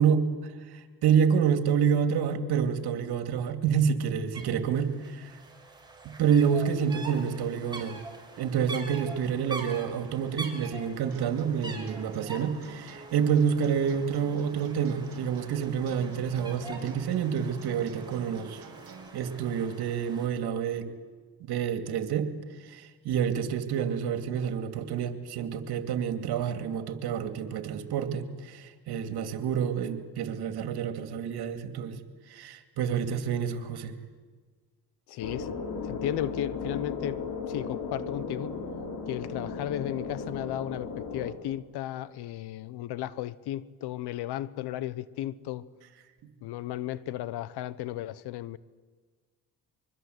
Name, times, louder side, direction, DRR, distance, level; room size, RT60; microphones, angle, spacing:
voice 1, 0.0-5.3 6.0-8.0 8.4-18.6 19.1-20.9 21.4-22.3 22.6-32.0 32.3-33.9, right 7 dB, 70° right, 8 dB, 2.6 m, -28 dB
sound 1, 4.3-4.5 4.7-20.3, right 2 dB, 10° right, 5.4 m, -45 dB
sound 2, 11.1-19.1, right 4 dB, 40° right, 5.9 m, -48 dB
voice 2, 35.1-35.5 35.8-37.2 37.5-38.6 39.1-45.6 46.4-48.6, left 13 dB, 75° left, 18 dB, 1.1 m, -34 dB
sound 3, 35.2-41.3, left 5 dB, 60° left, 4.4 m, -36 dB
24.5 x 23.0 x 8.1 m, 1.5 s
supercardioid pair, 80°, 39 cm